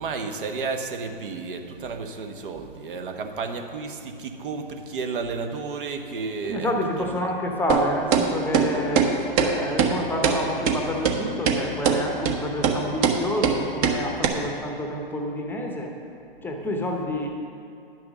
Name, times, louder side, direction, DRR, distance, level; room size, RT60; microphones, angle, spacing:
voice 1, 0.0-6.7 7.0-7.3, right 4 dB, 65° right, 5 dB, 1.1 m, -32 dB
voice 2, 6.4-15.9 16.4-17.3, left 1 dB, 5° left, 1 dB, 0.8 m, -28 dB
sound 1, 7.7-7.8 8.1-8.2 8.5-8.7 9.0-9.1 9.4-9.5 9.8-9.9 10.2-10.4 10.7-10.8 11.0-11.1 11.5-11.6 11.8-12.0 12.3-12.4 12.6-12.8 13.0-13.2 13.4-13.6 13.8-14.0 14.2-14.3, right 8 dB, 40° right, 1.0 m, -20 dB
10.5 x 6.1 x 6.1 m, 2.6 s
hypercardioid pair, 125°, 29 cm